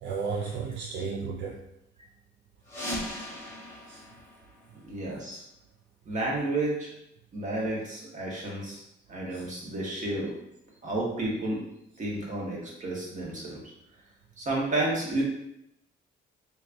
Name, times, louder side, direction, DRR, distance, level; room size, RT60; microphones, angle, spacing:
voice 1, 0.0-1.7 3.9-4.0 9.3-9.4, right 5 dB, 65° right, 0 dB, 0.4 m, -34 dB
sound 1, 2.6-5.3, left 1 dB, 15° left, 1.1 m, -39 dB
voice 2, 4.8-5.4 6.0-6.9 7.3-8.8 9.1-10.4 10.8-11.6 12.0-13.6 14.4-15.2, right 2 dB, 40° right, -4 dB, 1.3 m, -31 dB
3.5 x 3.1 x 2.6 m, 0.80 s
cardioid pair, 90°, 20 cm